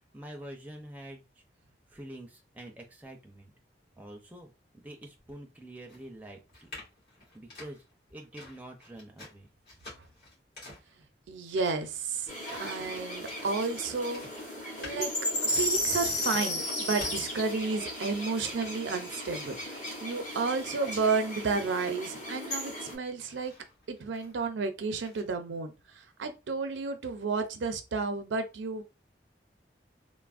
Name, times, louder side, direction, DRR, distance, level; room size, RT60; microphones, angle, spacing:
voice 1, 0.1-1.2 1.9-3.5 4.0-6.7 7.3-7.8 8.1-9.5, right 1 dB, 10° right, 0.5 m, -46 dB
sound 1, 5.9-18.2 18.5-19.8 20.1-22.7 23.1-24.6 25.0-25.2, left 2 dB, 55° left, 1.7 m, -50 dB
voice 2, 11.3-12.3 12.6-14.2 14.8-23.5 23.9-28.8, right 4 dB, 90° right, 0.5 m, -32 dB
sound 2, 12.3-22.9, left 1 dB, 40° left, 1.1 m, -35 dB
3.2 x 2.0 x 2.4 m
head